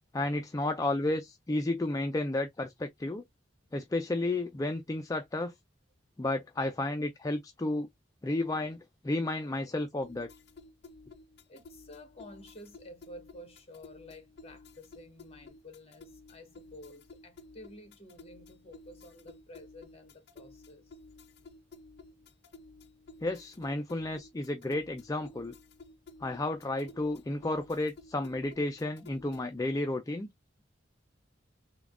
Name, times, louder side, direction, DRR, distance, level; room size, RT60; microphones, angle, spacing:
voice 1, 0.1-3.2 3.7-5.5 6.2-7.9 8.2-8.8 9.0-10.3 23.2-25.5 26.2-30.3, left 2 dB, 20° left, 0.4 m, -32 dB
sound 1, 10.0-29.6, left 3 dB, 60° left, 0.6 m, -54 dB
voice 2, 11.5-20.9, left 1 dB, 35° left, 1.3 m, -51 dB
3.7 x 2.2 x 3.6 m
head